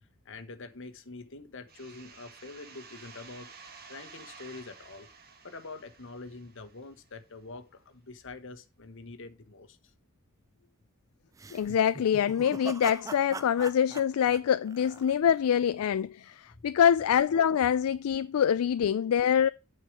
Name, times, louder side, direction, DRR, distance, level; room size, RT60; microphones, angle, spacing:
voice 1, 0.2-3.5 3.9-5.1 5.4-9.8 16.5-16.6, left 3 dB, 60° left, 1.2 m, -45 dB
sound 1, 1.7-7.2, right 5 dB, 45° right, 1.4 m, -52 dB
sound 2, 11.4-15.5, right 3 dB, 15° right, 0.3 m, -42 dB
voice 2, 11.5-19.5, left 8 dB, 75° left, 0.3 m, -25 dB
8.4 x 4.6 x 4.7 m
head